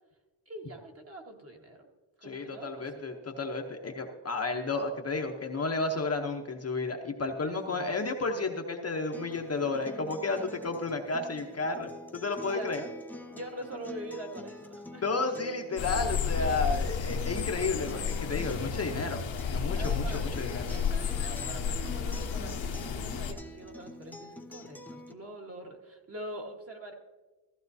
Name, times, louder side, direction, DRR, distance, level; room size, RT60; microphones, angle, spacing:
voice 1, 0.5-1.9 2.2-3.1 7.5-8.0 12.4-12.9 13.3-15.1 19.8-26.9, right 1 dB, 30° right, 2 dB, 1.4 m, -44 dB
voice 2, 2.2-12.8 15.0-20.7, left 3 dB, 30° left, 2 dB, 0.8 m, -32 dB
Acoustic guitar, 9.1-25.1, left 1 dB, 5° left, 0.4 m, -46 dB
sound 1, 15.8-23.3, left 6 dB, 65° left, 1.1 m, -32 dB
15.0 x 14.5 x 2.7 m, 1.2 s
wide cardioid pair, 150°, 48 cm